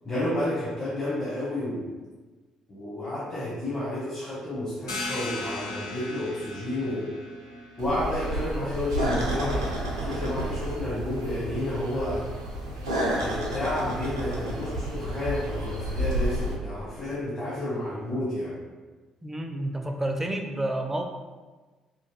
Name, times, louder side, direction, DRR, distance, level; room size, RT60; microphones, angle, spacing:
voice 1, 0.0-1.9 2.7-7.1 7.8-12.3 13.2-18.6, left 1 dB, 25° left, -7 dB, 0.9 m, -31 dB
sound 1, 4.9-10.2, left 2 dB, 85° left, 0.4 m, -38 dB
sound 2, 7.8-16.5, equal, 90° right, 0.4 m, -30 dB
voice 2, 19.2-21.0, right 1 dB, 15° right, 4 dB, 0.4 m, -29 dB
2.9 x 2.2 x 2.9 m, 1.3 s
figure-of-eight pair, 45°, 2 cm